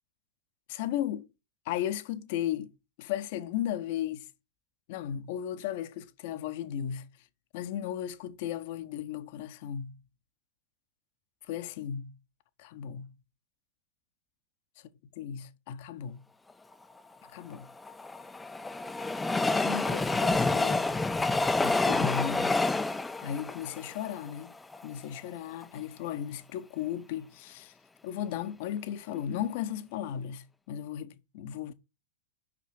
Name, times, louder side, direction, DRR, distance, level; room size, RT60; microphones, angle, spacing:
voice 1, 0.7-1.3 1.7-4.3 4.9-7.1 7.5-10.0 11.5-12.1 12.6-13.1 15.2-16.2 17.3-17.7 19.5-20.9 21.6-22.6 23.2-24.5 24.8-27.7 28.0-31.7, left 10 dB, 50° left, 0.8 m, -35 dB
Train, 17.5-24.8 25.3-25.4 25.6-25.7, left 3 dB, 10° left, 0.5 m, -28 dB
6.0 x 5.8 x 6.4 m
figure-of-eight pair, 90°, 0 cm